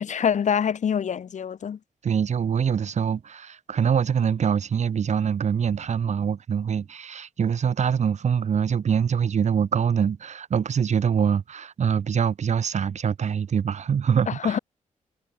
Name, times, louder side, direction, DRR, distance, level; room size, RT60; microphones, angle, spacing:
voice 1, 0.0-1.8 14.3-14.6, left 7 dB, 65° left, 4.4 m, -25 dB
voice 2, 2.0-14.6, right 7 dB, 60° right, 4.4 m, -24 dB
wide cardioid pair, 125°, 14 cm